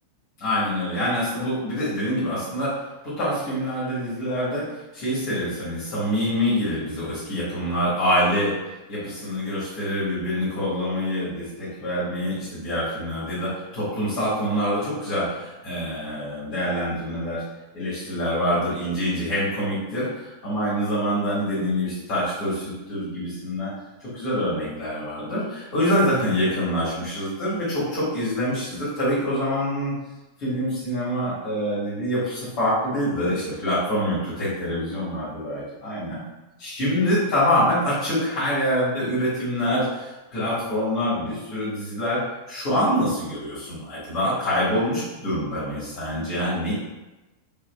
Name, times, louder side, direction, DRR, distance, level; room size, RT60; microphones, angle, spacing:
voice 1, 0.4-2.7 3.0-4.6 4.9-8.5 8.9-17.4 17.7-23.7 24.0-29.9 30.4-36.2 36.6-42.2 42.5-46.7, equal, 45° left, -10 dB, 1.5 m, -25 dB
3.6 x 3.2 x 2.2 m, 1.1 s
figure-of-eight pair, 90°, 0 cm